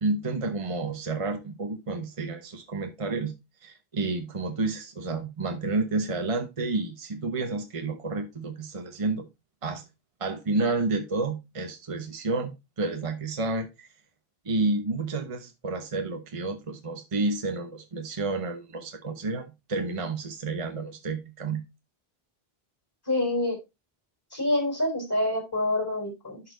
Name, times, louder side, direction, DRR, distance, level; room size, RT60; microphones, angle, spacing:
voice 1, 0.0-3.3 3.6-9.3 9.6-9.8 10.2-13.9 14.4-21.6, right 3 dB, 35° right, 6 dB, 1.0 m, -30 dB
voice 2, 23.1-23.6 24.3-26.4, left 1 dB, 20° left, 1 dB, 4.1 m, -26 dB
11.0 x 4.5 x 3.9 m, 0.23 s
omnidirectional pair, 1.1 m